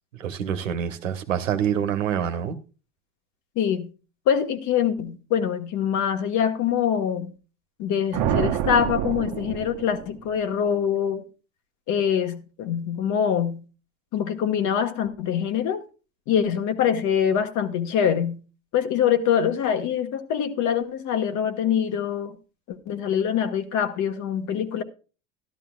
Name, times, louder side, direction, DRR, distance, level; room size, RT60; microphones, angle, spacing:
voice 1, 0.1-2.6, right 9 dB, 90° right, 1.3 m, -26 dB
voice 2, 3.5-3.9 4.3-7.3 7.8-11.2 11.9-13.6 14.1-15.8 16.3-18.4 18.7-22.4 22.7-24.8, left 8 dB, 50° left, 1.5 m, -24 dB
sound 1, 8.1-10.4, right 10 dB, 50° right, 1.1 m, -27 dB
13.0 x 12.0 x 2.3 m
hypercardioid pair, 90°, 37 cm